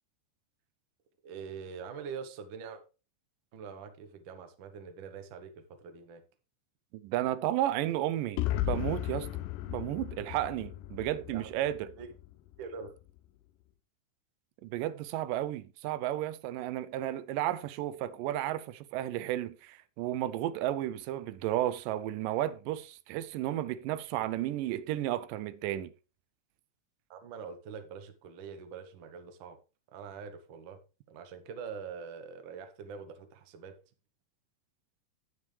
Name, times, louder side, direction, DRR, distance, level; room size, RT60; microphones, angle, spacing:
voice 1, 1.2-2.8 3.5-6.2 11.1-11.5 12.0-12.1 12.6-12.9 27.1-29.6 29.9-30.8 31.1-33.8, right 6 dB, 65° right, 1.2 m, -44 dB
voice 2, 6.9-9.3 9.7-11.9 14.6-25.9, right 13 dB, 90° right, 2.3 m, -33 dB
sound 1, 8.4-12.3, left 14 dB, 90° left, 2.3 m, -35 dB
9.6 x 9.2 x 3.2 m
omnidirectional pair, 3.8 m